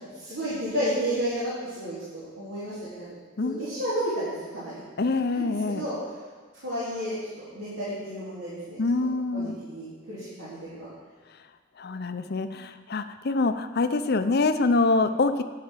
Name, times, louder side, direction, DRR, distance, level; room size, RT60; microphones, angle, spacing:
voice 1, 0.2-3.0 3.4-4.8 5.3-6.0 6.6-10.9, equal, 75° right, -12 dB, 3.9 m, -32 dB
voice 2, 5.0-5.9 8.8-9.6 11.8-15.4, left 3 dB, 55° left, 9 dB, 0.6 m, -25 dB
11.0 x 5.8 x 7.5 m, 1.4 s
head